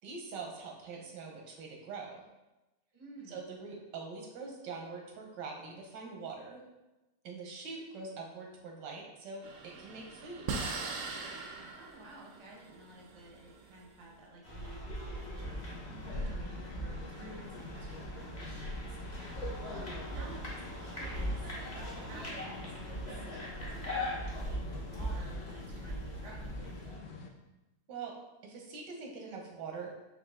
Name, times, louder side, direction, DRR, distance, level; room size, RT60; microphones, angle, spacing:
voice 1, 0.0-2.2 3.3-6.6 7.2-10.5 27.9-28.2 28.4-29.9, right 4 dB, 85° right, 0 dB, 1.6 m, -44 dB
voice 2, 2.9-3.6 11.7-15.7 16.1-21.4 21.7-26.6, right 2 dB, 30° right, -1 dB, 0.5 m, -53 dB
sound 1, 9.4-14.1, right 4 dB, 70° right, 0.7 m, -41 dB
sound 2, 14.4-27.0, equal, 30° left, 0.8 m, -40 dB
sound 3, 15.4-27.3, left 4 dB, 65° left, 0.8 m, -49 dB
5.3 x 2.8 x 3.5 m, 1.0 s
omnidirectional pair, 1.9 m